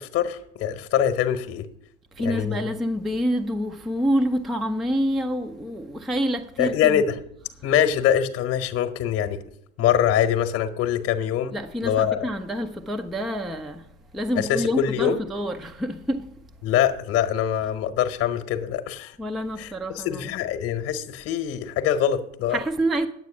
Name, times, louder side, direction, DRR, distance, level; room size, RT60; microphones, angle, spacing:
voice 1, 0.0-1.7 2.2-2.7 6.6-7.1 7.6-9.4 9.8-11.5 11.8-12.3 14.4-15.2 16.6-19.1 19.6-22.6, left 9 dB, 35° left, 1.0 m, -24 dB
voice 2, 2.2-7.0 11.5-13.8 14.1-16.2 19.2-20.3 22.5-23.1, equal, ahead, 0.4 m, -27 dB
9.7 x 8.1 x 6.0 m
figure-of-eight pair, 80°, 43 cm